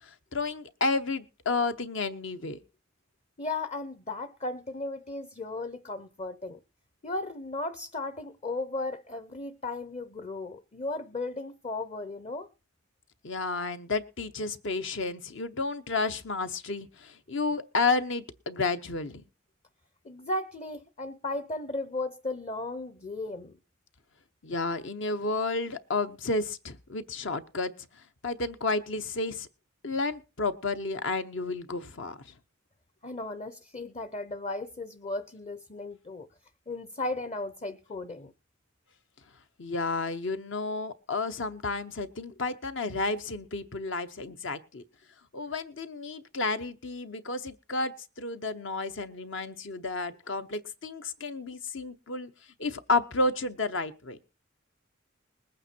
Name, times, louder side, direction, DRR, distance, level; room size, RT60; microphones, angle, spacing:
voice 1, 0.0-2.6 13.2-19.2 24.4-27.7 28.2-29.5 29.8-32.3 39.6-44.8 45.3-52.3 52.6-54.2, left 3 dB, 65° left, 0.9 m, -31 dB
voice 2, 3.4-6.6 7.0-12.5 20.0-23.6 33.0-36.3 36.7-38.3, left 2 dB, 35° left, 0.7 m, -35 dB
20.0 x 8.9 x 4.5 m
head